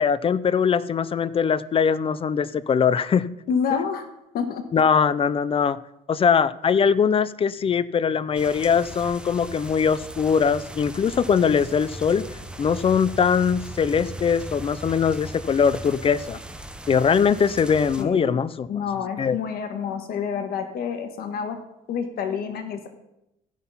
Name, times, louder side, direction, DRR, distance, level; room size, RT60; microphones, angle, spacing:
voice 1, 0.0-3.3 4.7-5.8 6.1-12.2 12.6-16.4 16.9-18.7 19.2-19.4, left 6 dB, 35° left, 17 dB, 0.5 m, -21 dB
voice 2, 3.5-4.1 4.3-4.6 18.0-18.4 18.7-21.6 21.9-22.9, left 6 dB, 65° left, 6 dB, 1.5 m, -28 dB
sound 1, 8.3-18.0, right 1 dB, 5° right, 0.9 m, -38 dB
15.0 x 5.7 x 5.7 m, 0.86 s
cardioid pair, 110°, 17 cm